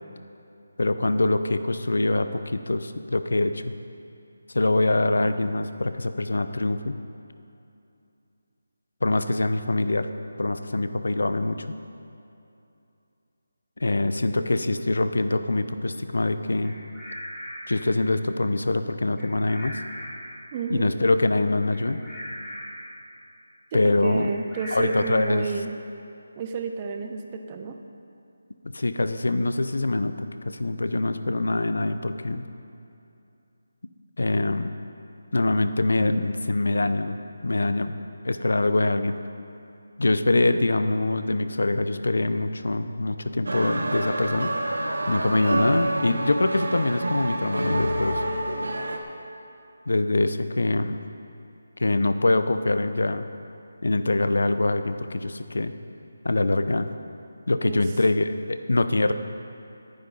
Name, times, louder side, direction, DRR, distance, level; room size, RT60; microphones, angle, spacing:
voice 1, 0.8-3.7 4.5-7.0 9.0-10.1 10.4-11.6 13.8-16.7 17.7-19.8 20.7-22.0 23.7-24.3 24.7-25.5 28.6-30.1 30.4-32.4 34.2-34.7 35.3-38.0 38.2-39.2 40.0-44.5 45.1-48.2 49.9-51.0 51.8-53.2 53.8-55.7 56.2-56.9 57.5-59.1, left 2 dB, 80° left, 10 dB, 0.8 m, -24 dB
Bird vocalization bird call bird song, 16.6-17.8 19.2-20.4 21.7-22.9 24.2-25.4, equal, 5° left, 3.0 m, -39 dB
voice 2, 20.5-20.9 23.7-25.7 26.4-27.8 57.6-57.9, right 5 dB, 15° right, 5 dB, 0.6 m, -31 dB
sound 1, 43.5-49.0, right 1 dB, 80° right, 1.5 m, -28 dB
18.5 x 10.5 x 4.0 m, 2.7 s
figure-of-eight pair, 180°, 0 cm